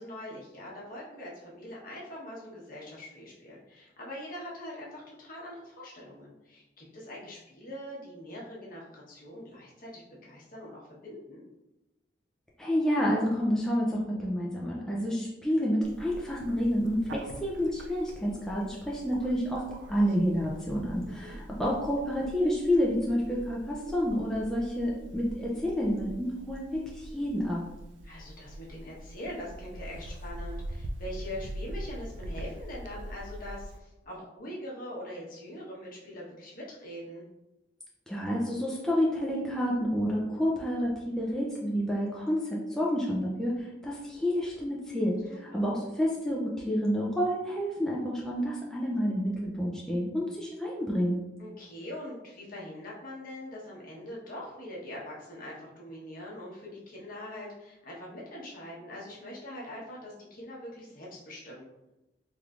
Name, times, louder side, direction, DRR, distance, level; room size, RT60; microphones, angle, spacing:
voice 1, 0.0-11.4 21.1-21.4 28.0-37.3 45.3-45.6 51.4-61.7, left 1 dB, 50° left, -4 dB, 1.0 m, -43 dB
voice 2, 12.6-27.6 38.1-45.2 45.5-51.2, equal, 5° left, -5 dB, 0.4 m, -29 dB
Bird, 15.8-33.8, right 1 dB, 75° right, 0.4 m, -43 dB
3.5 x 3.1 x 2.4 m, 0.96 s
head